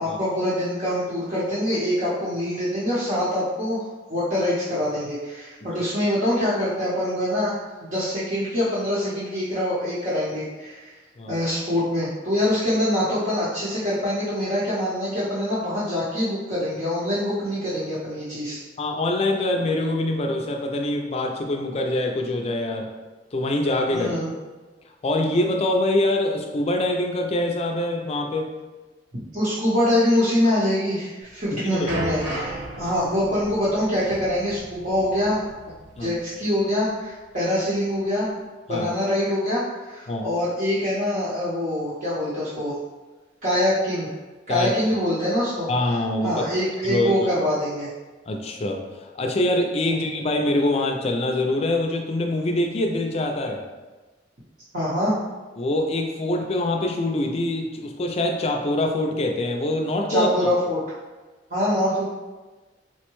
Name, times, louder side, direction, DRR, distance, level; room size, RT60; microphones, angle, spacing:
voice 1, 0.0-7.5 7.8-10.9 11.3-18.6 23.9-24.3 29.3-35.4 36.0-38.3 38.7-42.7 43.4-44.1 44.5-45.7 46.2-47.9 49.8-50.1 54.7-55.1 60.1-60.8 61.5-62.0, left 1 dB, 50° right, -11 dB, 0.8 m, -24 dB
voice 2, 18.8-22.9 23.3-24.1 25.0-28.5 31.5-31.9 36.0-36.1 38.7-38.9 40.1-40.3 44.5-44.7 45.7-46.4 46.9-47.1 48.3-48.8 49.2-53.6 55.6-60.5, left 1 dB, 35° left, 2 dB, 0.4 m, -24 dB
sound 1, 31.3-36.2 36.4-36.6 37.3-37.4, right 1 dB, 75° right, 1.3 m, -35 dB
4.4 x 2.2 x 3.0 m, 1.2 s
head